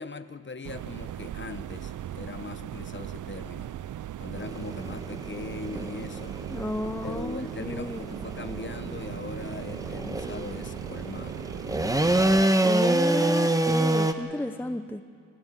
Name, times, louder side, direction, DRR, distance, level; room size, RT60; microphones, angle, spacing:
voice 1, 0.0-3.7 4.2-6.4 7.0-11.5, left 4 dB, 35° left, 12 dB, 1.0 m, -40 dB
sound 1, 0.6-12.5, right 11 dB, 65° right, 0.5 m, -38 dB
sound 2, 4.4-14.1, right 1 dB, 10° right, 1.2 m, -27 dB
voice 2, 6.5-8.0 12.6-15.0, left 1 dB, 5° left, 10 dB, 0.7 m, -32 dB
28.5 x 15.0 x 7.5 m, 2.2 s
cardioid pair, 75°, 33 cm